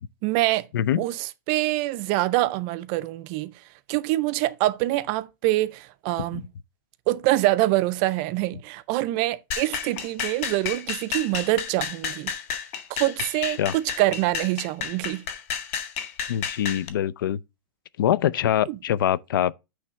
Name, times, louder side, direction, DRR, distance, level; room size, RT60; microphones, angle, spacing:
voice 1, 0.2-0.7 1.0-3.5 3.9-6.4 7.1-12.3 12.9-15.2 18.7-18.8, right 17 dB, 30° right, 0.4 m, -25 dB
voice 2, 0.7-1.0 6.3-6.4 13.4-13.7 16.3-17.4 18.0-19.5, left 11 dB, 90° left, 0.4 m, -24 dB
sound 1, 9.5-16.9, left 7 dB, 45° left, 0.9 m, -31 dB
8.8 x 3.2 x 5.6 m
supercardioid pair, 175°, 11 cm